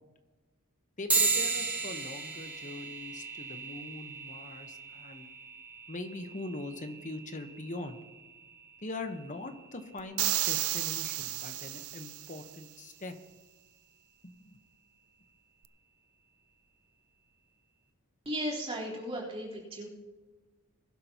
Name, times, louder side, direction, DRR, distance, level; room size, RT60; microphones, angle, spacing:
voice 1, 1.0-5.3 5.9-8.0 8.8-13.1 14.2-14.6, left 2 dB, 35° left, 7 dB, 1.0 m, -42 dB
sound 1, 1.1-10.9, right 4 dB, 5° right, 1.4 m, -36 dB
sound 2, 10.2-12.5, right 15 dB, 85° right, 0.5 m, -32 dB
voice 2, 18.3-19.9, equal, 30° right, -6 dB, 3.8 m, -35 dB
22.0 x 11.5 x 2.9 m, 1.2 s
head